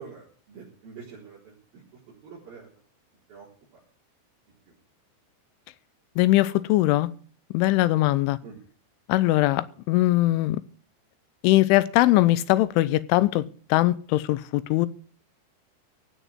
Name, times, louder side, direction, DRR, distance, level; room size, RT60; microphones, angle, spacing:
voice 1, 0.0-2.7 3.3-3.5 8.4-8.6, right 6 dB, 50° right, -5 dB, 5.8 m, -45 dB
voice 2, 6.2-7.1 7.5-8.4 9.1-10.6 11.4-14.9, left 17 dB, 90° left, 17 dB, 3.3 m, -21 dB
16.5 x 6.2 x 9.6 m, 0.42 s
omnidirectional pair, 5.4 m